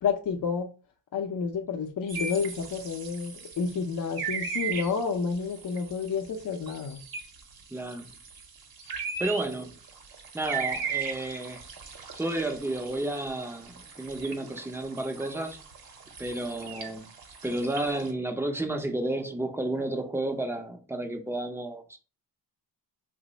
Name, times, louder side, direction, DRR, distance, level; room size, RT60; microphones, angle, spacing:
voice 1, 0.0-0.7 1.1-7.0, left 5 dB, 50° left, 0.5 m, -30 dB
sound 1, 2.1-18.1, right 6 dB, 55° right, 0.8 m, -38 dB
voice 2, 7.7-8.1 9.2-9.8 10.3-11.6 12.2-15.6 16.2-17.1 17.4-22.0, right 1 dB, 5° right, 0.5 m, -31 dB
2.9 x 2.0 x 4.0 m
cardioid pair, 80°, 44 cm